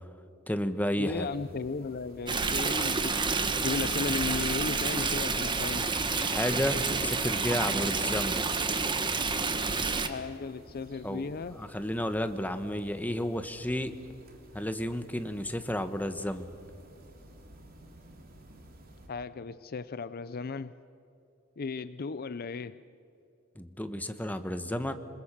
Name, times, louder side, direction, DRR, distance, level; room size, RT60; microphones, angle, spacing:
voice 1, 0.5-1.3 6.2-8.4 11.0-11.3 11.6-13.9 14.5-16.5 23.6-24.9, left 1 dB, 10° left, 9 dB, 1.1 m, -32 dB
voice 2, 1.0-3.2 3.6-5.9 10.0-11.6 19.1-20.7 21.6-22.8, left 4 dB, 45° left, 14 dB, 0.5 m, -35 dB
sound 1, 1.0-19.1, right 1 dB, 45° right, 3.2 m, -53 dB
Stream, 2.3-10.1, right 4 dB, 25° right, 1.3 m, -29 dB
27.0 x 21.5 x 7.4 m, 2.6 s
head